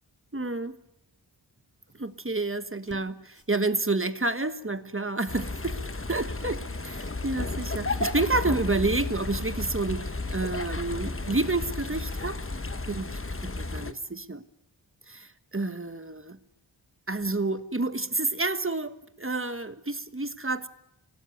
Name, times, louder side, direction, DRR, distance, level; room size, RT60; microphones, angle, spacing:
voice 1, 0.3-0.7 1.9-5.8 6.1-6.6 7.2-12.4 12.9-14.4 15.1-16.4 17.1-20.7, right 3 dB, 30° right, 11 dB, 1.3 m, -29 dB
sound 1, 1.8-2.2 2.7-3.1 3.3-3.5 4.4-4.5 5.2-5.8 6.5-8.7 9.0-9.6, left 2 dB, 60° left, 3.7 m, -57 dB
sound 2, 5.3-13.9, left 2 dB, 30° left, 1.2 m, -33 dB
25.5 x 17.5 x 9.3 m, 0.87 s
wide cardioid pair, 45°, 45 cm